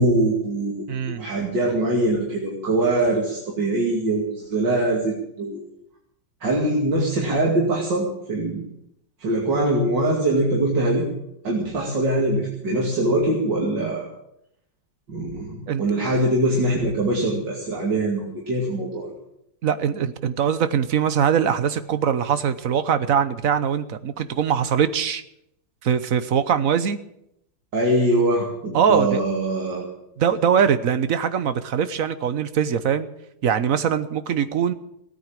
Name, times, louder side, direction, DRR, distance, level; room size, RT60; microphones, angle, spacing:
voice 1, 0.0-5.6 6.4-8.6 9.2-11.1 11.4-14.1 15.1-19.1 27.7-29.9, right 1 dB, 70° right, -2 dB, 3.2 m, -23 dB
voice 2, 0.9-1.3 15.7-15.8 19.6-25.2 25.8-27.0 28.7-29.2 30.2-33.1 33.4-34.7, right 8 dB, 55° right, 12 dB, 1.2 m, -22 dB
17.0 x 9.4 x 8.9 m, 0.78 s
omnidirectional pair, 2.0 m